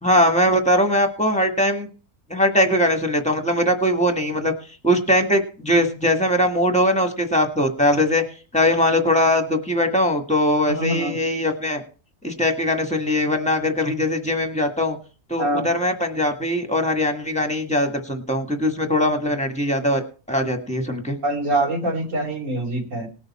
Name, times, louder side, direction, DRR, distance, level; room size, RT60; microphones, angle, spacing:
voice 1, 0.0-1.9 2.3-4.5 4.8-8.2 8.5-11.8 12.2-15.0 15.3-20.0 20.3-21.2, left 1 dB, 5° left, 5 dB, 1.6 m, -21 dB
voice 2, 10.7-11.2 15.4-15.7 20.7-20.8 21.2-23.1, right 1 dB, 75° right, 0 dB, 3.2 m, -24 dB
19.5 x 6.6 x 4.3 m, 0.37 s
omnidirectional pair, 1.3 m